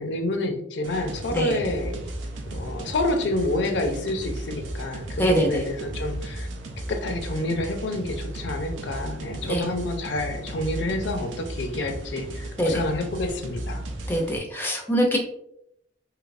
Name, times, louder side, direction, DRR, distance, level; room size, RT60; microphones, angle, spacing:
voice 1, 0.0-2.0 2.5-6.5 6.9-13.8, left 2 dB, 65° left, 5 dB, 0.5 m, -28 dB
sound 1, 0.8-14.4, right 1 dB, 90° right, 0.5 m, -35 dB
voice 2, 5.2-5.6 9.4-9.7 12.6-12.8 14.1-15.2, equal, 10° left, 1 dB, 0.4 m, -23 dB
3.2 x 2.8 x 2.4 m, 0.75 s
head